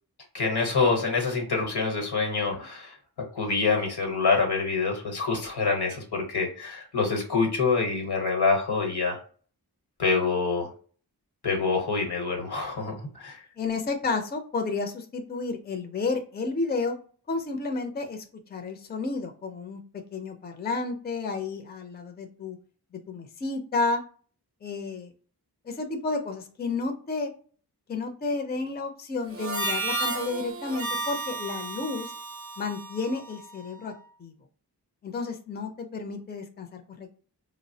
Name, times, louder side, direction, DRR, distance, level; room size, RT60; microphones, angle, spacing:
voice 1, 0.3-2.9 3.3-9.2 10.0-10.7 11.4-12.9 13.2-13.4, left 4 dB, 80° left, 1 dB, 1.0 m, -26 dB
voice 2, 13.6-17.0 17.3-18.2 18.5-19.8 20.1-22.6 22.9-24.0 24.6-25.1 25.7-27.3 27.9-32.1 32.6-33.9 34.2-34.4 35.0-37.2, left 3 dB, 25° left, 5 dB, 0.4 m, -31 dB
Harmonica, 29.3-33.9, right 3 dB, 35° right, 0.6 m, -33 dB
3.4 x 2.0 x 2.6 m, 0.41 s
wide cardioid pair, 60°, 39 cm